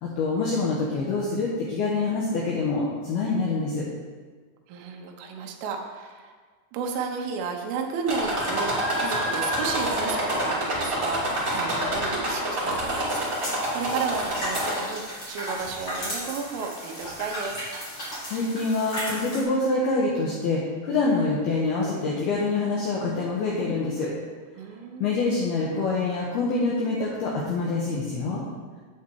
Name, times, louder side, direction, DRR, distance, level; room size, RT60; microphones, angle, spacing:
voice 1, 0.0-3.8 18.3-24.1 25.0-28.4, left 3 dB, 75° left, -4 dB, 2.3 m, -26 dB
voice 2, 4.7-6.4 6.7-17.7 24.6-25.1, right 5 dB, 80° right, 3 dB, 3.3 m, -33 dB
sound 1, 8.1-15.1 15.6-16.2 17.0-17.1 17.5-17.6, right 1 dB, 65° right, 0.8 m, -27 dB
sound 2, 13.1-19.4, equal, 25° left, 2.5 m, -35 dB
8.6 x 8.1 x 4.7 m, 1.5 s
omnidirectional pair, 5.9 m